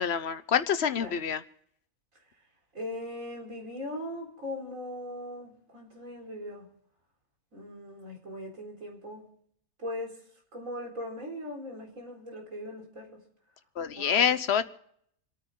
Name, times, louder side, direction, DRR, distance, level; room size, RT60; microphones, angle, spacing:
voice 1, 0.0-1.4 13.8-14.6, left 8 dB, 55° left, 1.0 m, -26 dB
voice 2, 2.7-6.7 7.5-9.3 9.8-10.2 10.5-13.2 13.9-14.3, left 1 dB, 65° right, 4.5 m, -39 dB
28.5 x 9.5 x 3.8 m
omnidirectional pair, 1.5 m